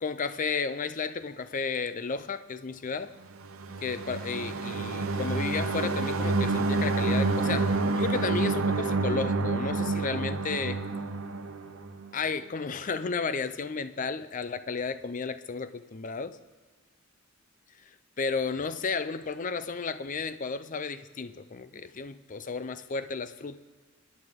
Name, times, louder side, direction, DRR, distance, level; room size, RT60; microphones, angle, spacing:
voice 1, 0.0-3.1 3.8-10.8 12.1-16.4 18.2-23.6, left 5 dB, 40° left, 12 dB, 0.5 m, -33 dB
sound 1, 3.4-12.1, right 3 dB, 80° right, 0.9 m, -28 dB
22.5 x 9.4 x 3.7 m, 1.5 s
head